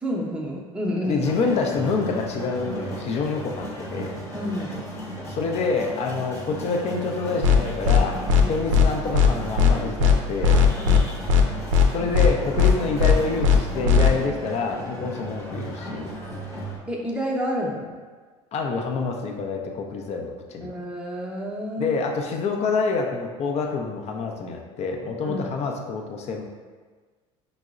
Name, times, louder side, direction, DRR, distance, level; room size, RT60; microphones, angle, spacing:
voice 1, 0.0-1.2 4.3-4.8 8.4-8.6 10.8-11.0 16.9-18.0 20.6-21.9 25.2-25.5, equal, 5° right, -3 dB, 0.7 m, -29 dB
voice 2, 1.0-4.1 5.3-8.2 8.5-10.6 11.9-16.1 18.5-20.7 21.8-26.4, left 4 dB, 45° left, 2 dB, 0.5 m, -27 dB
sound 1, 1.2-16.8, right 1 dB, 15° left, 0.9 m, -35 dB
sound 2, 7.4-7.6 7.8-8.0 8.3-8.4 8.7-8.9 9.1-9.3 9.6-9.7 10.0-10.1 10.4-11.0 11.3-11.4 11.7-11.9 12.1-12.3 12.6-12.7 13.0-13.1 13.4-13.6 13.8-14.1, left 6 dB, 85° right, 0.4 m, -16 dB
5.2 x 2.0 x 2.4 m, 1.4 s
hypercardioid pair, 75°, 16 cm